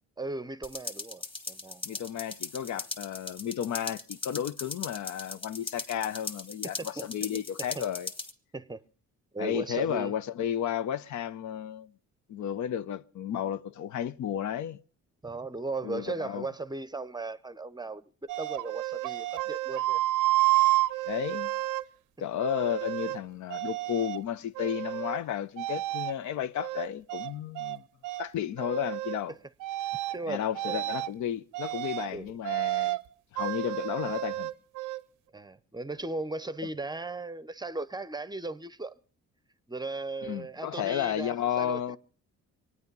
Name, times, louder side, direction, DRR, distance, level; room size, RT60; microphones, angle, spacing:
voice 1, 0.2-1.8 6.8-7.9 8.5-8.8 9.3-10.1 15.2-20.0 29.3-29.4 30.1-30.8 32.1-32.3 35.3-39.0 39.7-41.8, right 3 dB, 15° right, 0.6 m, -37 dB
sound 1, 0.6-8.3, left 1 dB, 15° left, 1.7 m, -39 dB
voice 2, 1.8-8.1 9.4-11.9 12.3-14.8 15.8-16.5 21.1-21.5 22.2-27.8 28.2-29.3 30.2-33.0 33.3-34.5 40.2-42.0, left 10 dB, 70° left, 0.7 m, -33 dB
sound 2, 18.3-21.8 22.4-23.2 23.5-24.2 24.6-25.2 25.6-26.1 26.6-27.8 28.0-28.3 28.6-29.2 29.6-30.2 30.5-31.1 31.5-32.1 32.4-33.0 33.4-35.0, right 17 dB, 85° right, 0.6 m, -30 dB
24.0 x 9.6 x 5.4 m
cardioid pair, 90°, 30 cm